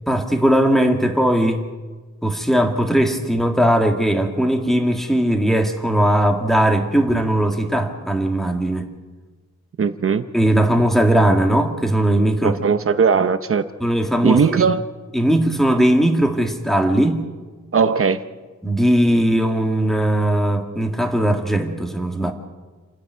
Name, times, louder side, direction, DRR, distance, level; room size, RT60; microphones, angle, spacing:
voice 1, 0.1-1.6 2.2-8.9 10.3-12.6 13.8-14.7 15.1-17.2 18.6-22.3, right 1 dB, ahead, 4 dB, 1.9 m, -18 dB
voice 2, 9.8-10.3 12.4-13.6 14.2-14.8 17.7-18.2, right 6 dB, 50° right, 10 dB, 0.8 m, -18 dB
29.0 x 10.0 x 9.3 m, 1.3 s
wide cardioid pair, 175°, 29 cm